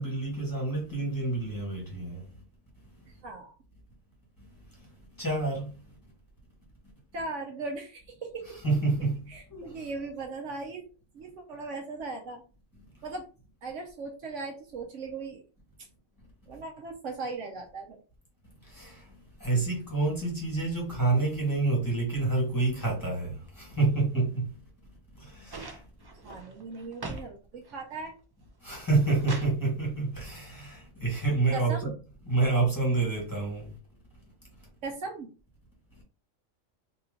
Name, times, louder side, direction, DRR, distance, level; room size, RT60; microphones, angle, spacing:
voice 1, 0.0-2.3 4.4-4.9 5.2-6.0 8.6-9.9 18.6-24.6 25.1-25.8 28.6-31.9 32.3-33.7 36.0-36.1, right 3 dB, 15° left, 1.6 m, -28 dB
voice 2, 3.2-3.5 7.1-8.5 9.3-10.9 11.1-12.4 13.0-13.3 13.6-15.4 16.5-18.0 26.2-28.1 31.5-31.9 34.8-35.3, right 3 dB, 65° right, 1.0 m, -38 dB
sound 1, 25.5-27.3 27.6-28.2 28.7-29.6 30.8-30.9, right 3 dB, 40° right, 0.3 m, -41 dB
2.9 x 2.9 x 3.8 m
omnidirectional pair, 1.4 m